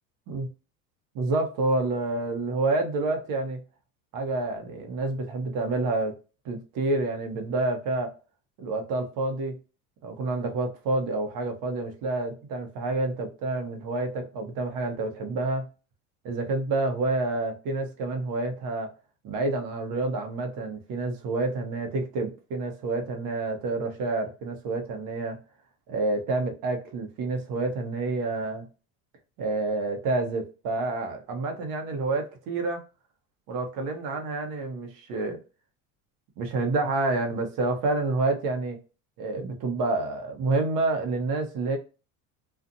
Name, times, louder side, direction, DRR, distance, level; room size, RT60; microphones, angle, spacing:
voice 1, 1.2-3.6 4.1-6.1 6.4-8.1 8.6-9.6 10.0-15.7 16.2-18.9 19.2-25.4 25.9-28.6 29.4-32.8 33.5-35.4 36.4-38.8 39.2-41.8, right 2 dB, 60° right, 1.0 m, -28 dB
2.6 x 2.5 x 2.5 m
supercardioid pair, 90°, 38 cm